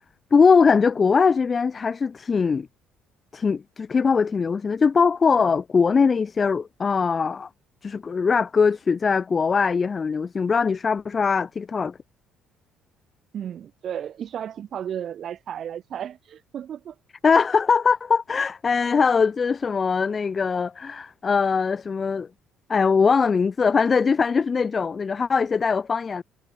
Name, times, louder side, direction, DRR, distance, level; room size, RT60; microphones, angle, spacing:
voice 1, 0.3-2.7 3.3-7.5 7.8-12.0 17.2-22.3 22.7-26.2, left 5 dB, 25° left, 0.9 m, -21 dB
voice 2, 13.3-17.0, right 9 dB, 45° right, 5.3 m, -34 dB
cardioid pair, 150°, 0 cm